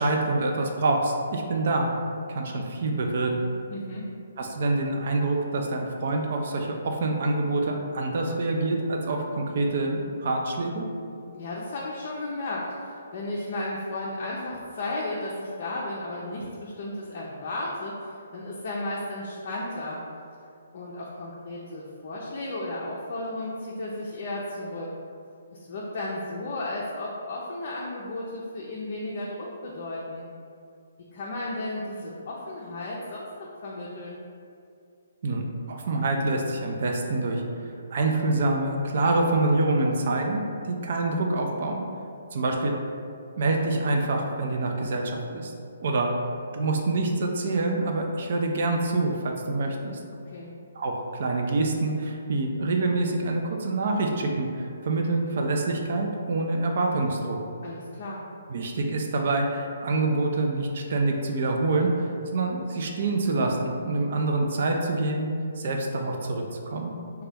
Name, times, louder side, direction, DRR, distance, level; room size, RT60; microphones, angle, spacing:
voice 1, 0.0-1.9 2.3-3.3 4.4-10.9 35.2-37.4 37.9-41.8 42.3-42.7 43.4-45.5 45.8-46.1 46.5-50.0 50.8-57.4 58.5-65.3 65.6-66.9, right 2 dB, 55° right, 2 dB, 0.4 m, -26 dB
voice 2, 3.7-4.1 11.3-20.0 20.7-24.9 25.5-30.3 31.1-34.2 50.3-50.5 57.6-58.3, left 2 dB, 50° left, -4 dB, 0.4 m, -34 dB
2.8 x 2.2 x 3.3 m, 2.4 s
hypercardioid pair, 140°, 0 cm